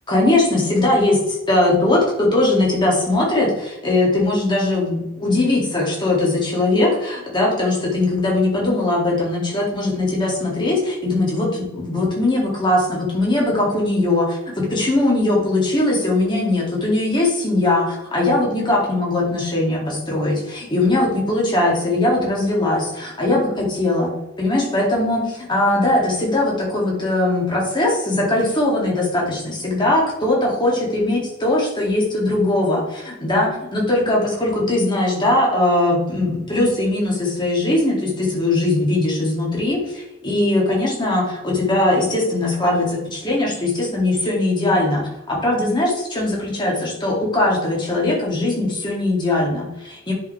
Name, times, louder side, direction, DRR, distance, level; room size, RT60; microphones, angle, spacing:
voice 1, 0.1-24.1 24.4-50.1, left 2 dB, 20° left, -3 dB, 2.3 m, -20 dB
9.7 x 5.6 x 3.3 m, 0.92 s
head